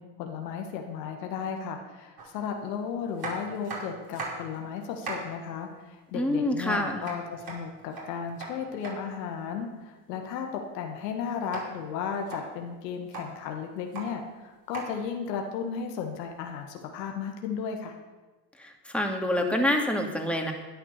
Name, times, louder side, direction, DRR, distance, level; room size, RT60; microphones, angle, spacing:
voice 1, 0.0-17.9, left 6 dB, 80° left, 3 dB, 1.8 m, -35 dB
sound 1, 2.2-2.3 3.2-4.6 4.8-5.3 7.0-9.0 11.5-11.7 12.1-12.4 12.9-13.3 13.8-14.1 14.7-14.9 16.1-16.2, right 4 dB, 45° right, 4.9 m, -38 dB
voice 2, 6.1-7.0 18.6-20.5, left 1 dB, ahead, 1 dB, 2.5 m, -27 dB
12.5 x 10.0 x 6.7 m, 1.2 s
hypercardioid pair, 70°, 49 cm